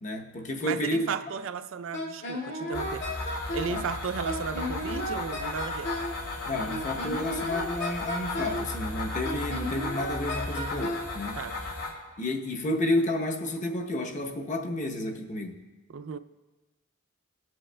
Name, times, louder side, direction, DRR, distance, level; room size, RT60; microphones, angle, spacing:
voice 1, 0.0-1.1 3.7-3.8 6.4-11.4 12.2-15.6, left 1 dB, 35° left, 0.8 m, -31 dB
voice 2, 0.6-5.9 11.3-11.6 15.9-16.2, right 6 dB, 70° right, 0.4 m, -35 dB
Wind instrument woodwind instrument, 1.9-3.8 4.3-6.2 6.7-8.7 9.2-11.1, left 1 dB, 55° left, 2.0 m, -34 dB
sound 1, 2.7-11.9, left 2 dB, 85° left, 2.5 m, -35 dB
22.5 x 7.7 x 2.2 m
head